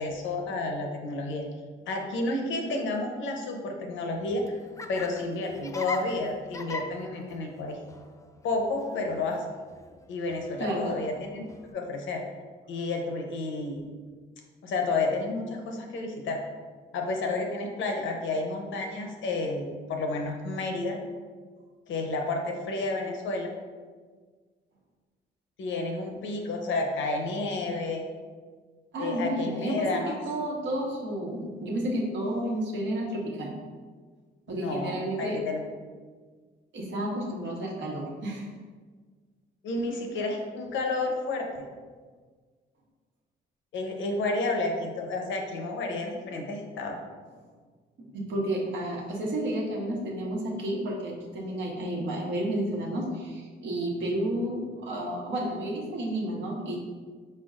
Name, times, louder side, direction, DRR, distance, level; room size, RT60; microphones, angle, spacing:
voice 1, 0.0-1.4 1.9-4.4 4.9-7.8 8.4-9.4 10.1-11.4 11.7-12.2 12.7-13.8 14.6-16.4 16.9-21.0 21.9-23.5 25.6-28.0 29.0-30.2 34.5-35.6 39.6-41.5 43.7-47.0, left 2 dB, 75° left, 2 dB, 0.8 m, -31 dB
Laughter, 4.2-11.7, left 2 dB, 15° left, 0.3 m, -42 dB
voice 2, 10.6-10.9 28.9-33.5 34.5-35.4 36.7-38.5 48.1-56.8, right 1 dB, 70° right, -2 dB, 1.1 m, -31 dB
4.4 x 4.2 x 2.4 m, 1.5 s
cardioid pair, 90°, 20 cm